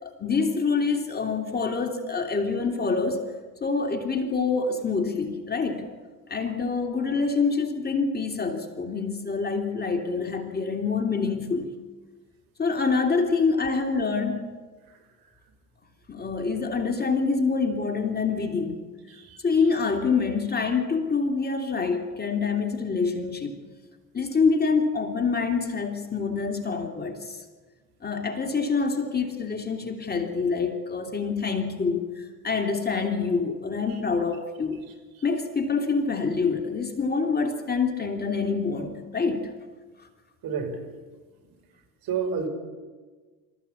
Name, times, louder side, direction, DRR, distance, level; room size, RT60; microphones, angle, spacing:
voice 1, 0.0-3.3 3.6-5.8 6.3-11.7 12.6-14.5 16.1-18.8 19.4-23.6 24.1-27.4 28.0-34.8 35.2-39.5, left 4 dB, 20° left, 4 dB, 3.0 m, -26 dB
voice 2, 40.4-40.8 42.0-42.5, right 6 dB, 45° right, 4 dB, 5.8 m, -30 dB
26.0 x 14.5 x 8.6 m, 1.4 s
hypercardioid pair, 75°, 46 cm